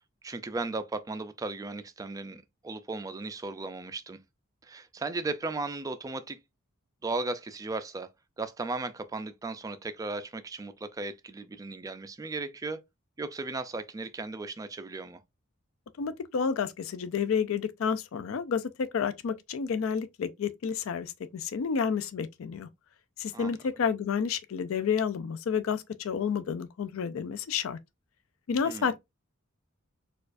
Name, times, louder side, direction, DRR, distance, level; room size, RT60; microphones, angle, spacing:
voice 1, 0.2-4.2 4.6-6.4 7.0-8.1 8.4-12.8 13.2-15.2 23.3-23.5 28.6-28.9, right 3 dB, 15° right, 0.3 m, -36 dB
voice 2, 16.0-22.7 23.2-27.8 28.5-29.0, left 6 dB, 70° left, 0.4 m, -30 dB
4.3 x 2.3 x 2.5 m
head